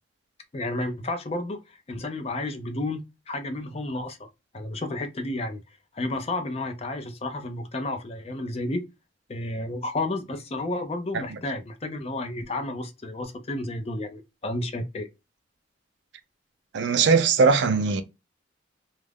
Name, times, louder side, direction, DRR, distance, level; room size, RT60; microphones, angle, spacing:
voice 1, 0.5-4.3 4.5-5.6 5.9-8.8 9.3-15.1, left 2 dB, 30° left, 0.4 m, -31 dB
voice 2, 16.7-18.0, right 5 dB, 65° right, 0.4 m, -20 dB
2.3 x 2.0 x 3.3 m
head